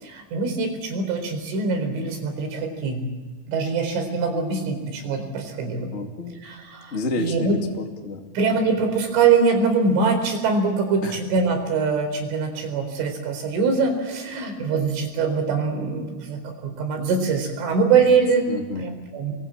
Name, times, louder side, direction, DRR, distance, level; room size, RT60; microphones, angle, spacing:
voice 1, 0.0-3.0 3.5-5.9 6.4-7.6 8.3-18.5 18.8-19.3, right 4 dB, 70° right, 5 dB, 6.7 m, -23 dB
voice 2, 5.9-6.4 6.9-8.3 11.0-11.2 18.1-18.2 18.5-19.0, left 2 dB, 75° left, 3 dB, 0.6 m, -30 dB
28.0 x 21.5 x 8.8 m, 1.3 s
omnidirectional pair, 6.0 m